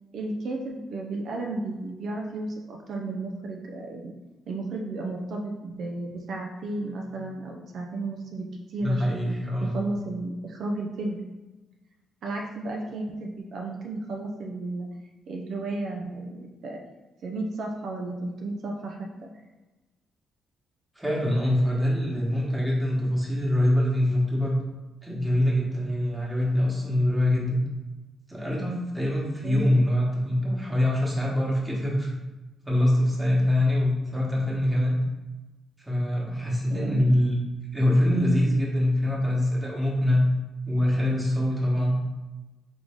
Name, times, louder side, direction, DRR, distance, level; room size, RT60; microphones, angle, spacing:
voice 1, 0.1-4.1 4.5-11.2 12.2-14.9 15.3-16.8 17.2-19.3 29.4-29.8 36.7-37.1, right 2 dB, 65° right, 1 dB, 0.5 m, -33 dB
voice 2, 8.8-9.8 21.0-24.6 25.0-27.6 28.3-32.1 32.6-35.0 35.8-37.4 37.7-40.2 40.6-41.9, left 1 dB, 5° right, -4 dB, 1.3 m, -24 dB
3.8 x 3.3 x 3.6 m, 1.1 s
cardioid pair, 90°, 0 cm